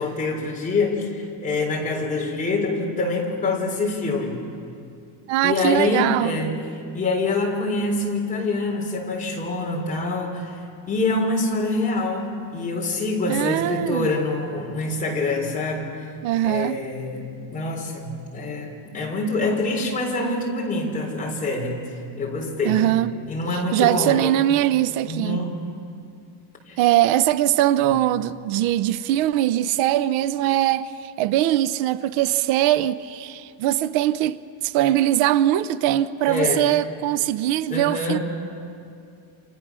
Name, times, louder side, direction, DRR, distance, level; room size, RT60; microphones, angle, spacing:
voice 1, 0.0-4.4 5.4-6.6 6.9-10.6 10.9-15.9 16.4-17.3 17.5-22.9 23.3-24.3 25.1-25.6 26.7-26.8 27.8-27.9 36.3-36.7 37.7-38.2, left 2 dB, 15° left, 3.9 m, -25 dB
voice 2, 5.3-6.4 13.3-14.1 16.2-16.8 22.6-23.1 23.7-25.4 26.8-34.4 34.6-38.2, right 13 dB, 80° right, 0.8 m, -21 dB
28.5 x 27.0 x 6.2 m
cardioid pair, 175°, 46 cm